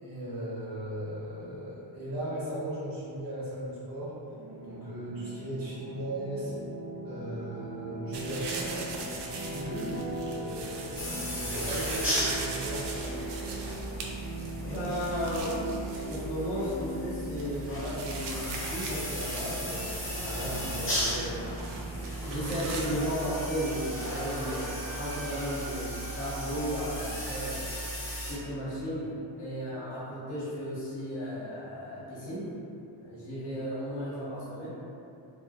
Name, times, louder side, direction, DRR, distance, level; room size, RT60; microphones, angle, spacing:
voice 1, 0.0-4.1 4.6-6.6 7.0-8.9 9.7-9.9 10.3-12.8, right 1 dB, 45° right, -9 dB, 1.1 m, -37 dB
sound 1, 4.3-23.1, right 1 dB, 10° right, 1.3 m, -41 dB
sound 2, 8.1-22.9, right 3 dB, 60° right, 0.5 m, -41 dB
voice 2, 9.5-9.9 14.6-15.5 16.0-21.3 22.2-24.6 24.9-27.6 28.3-29.1 29.4-32.5 33.0-34.7, equal, 80° left, -10 dB, 1.3 m, -35 dB
sound 3, 11.0-28.3, equal, 25° left, 0.8 m, -36 dB
2.8 x 2.5 x 2.2 m, 2.6 s
cardioid pair, 95°, 48 cm